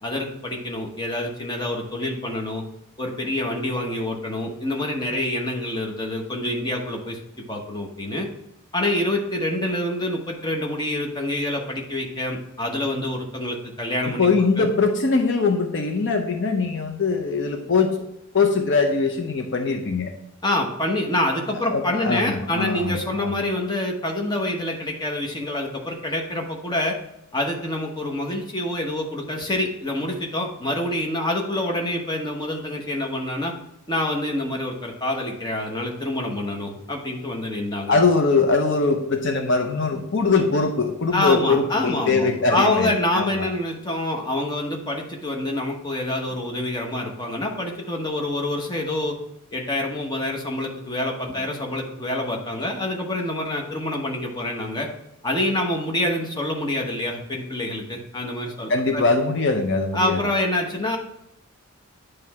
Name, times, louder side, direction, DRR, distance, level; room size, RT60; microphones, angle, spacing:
voice 1, 0.0-2.6 3.0-7.2 7.5-8.3 8.7-14.7 20.4-27.0 27.3-33.5 33.9-38.0 41.1-49.2 49.5-54.9 55.2-59.0 59.9-61.0, left 1 dB, 20° left, 1 dB, 1.0 m, -26 dB
voice 2, 14.2-18.1 18.3-20.1 21.7-23.3 37.9-43.5 58.7-60.2, left 4 dB, 55° left, 4 dB, 0.6 m, -22 dB
9.2 x 3.3 x 4.7 m, 0.82 s
head